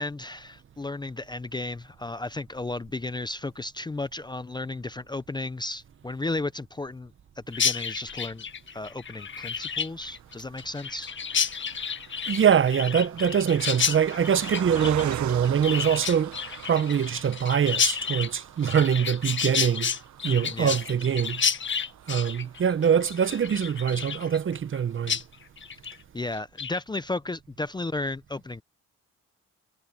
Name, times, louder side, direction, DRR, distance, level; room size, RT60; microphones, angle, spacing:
voice 1, 0.0-8.4 8.7-11.1 20.2-20.8 26.1-28.6, left 2 dB, 15° left, 0.6 m, -34 dB
Chirp tweet, 7.5-24.8 25.1-25.2 25.6-26.0 26.3-26.8, left 7 dB, 40° left, 1.4 m, -31 dB
Car passing by, 9.5-25.0 25.5-25.6 25.9-26.0, right 13 dB, 70° right, 1.0 m, -42 dB
voice 2, 12.3-16.3 16.6-19.9 20.2-21.4 22.1-25.2, right 8 dB, 40° right, 1.0 m, -24 dB
cardioid pair, 90°, 30 cm